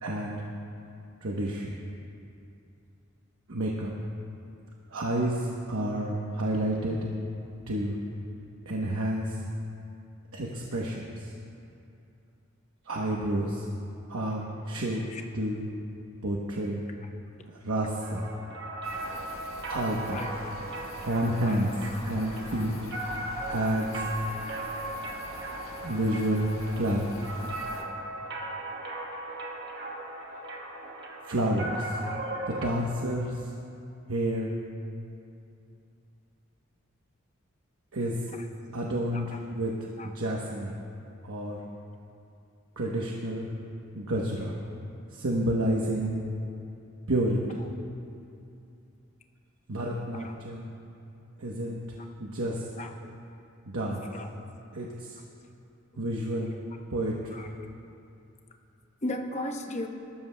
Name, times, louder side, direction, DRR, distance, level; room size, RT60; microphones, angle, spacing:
voice 1, 0.0-0.4 1.2-1.7 3.5-3.9 4.9-7.0 7.7-8.0 8.7-9.4 10.3-11.3 12.8-13.7 14.1-15.0 15.3-15.7 16.2-16.8 17.6-18.2 19.7-20.2 21.0-21.7 22.0-22.7 23.5-24.1 25.8-26.5 26.8-27.3 31.2-32.0 32.5-33.4 34.1-34.5 37.9-38.2 38.7-39.7 40.1-40.8 41.2-41.6 42.8-43.5 43.9-44.6 45.1-46.1 47.1-47.7 49.7-50.7 51.4-51.8 52.2-52.7 53.6-54.1 54.7-55.2 56.0-56.5 56.9-57.2, right 1 dB, 80° right, -2 dB, 1.0 m, -29 dB
sound 1, 18.0-32.7, right 2 dB, 55° right, 1.4 m, -37 dB
sound 2, 18.8-27.8, left 2 dB, 80° left, 1.3 m, -45 dB
voice 2, 59.0-59.9, left 1 dB, 30° left, 4 dB, 0.8 m, -36 dB
20.5 x 13.0 x 2.3 m, 2.7 s
head